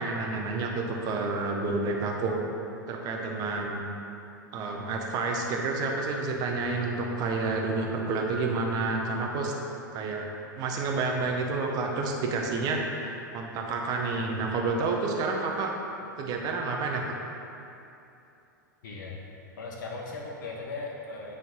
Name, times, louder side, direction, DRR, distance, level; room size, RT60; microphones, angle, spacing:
voice 1, 0.0-2.4 2.9-3.9 4.5-9.5 9.9-10.3 10.6-15.7 16.2-17.1, right 3 dB, 40° right, 1 dB, 0.9 m, -29 dB
voice 2, 18.8-19.2 19.6-21.3, left 3 dB, 65° left, -2 dB, 1.1 m, -38 dB
9.1 x 3.9 x 3.7 m, 2.8 s
hypercardioid pair, 100°, 11 cm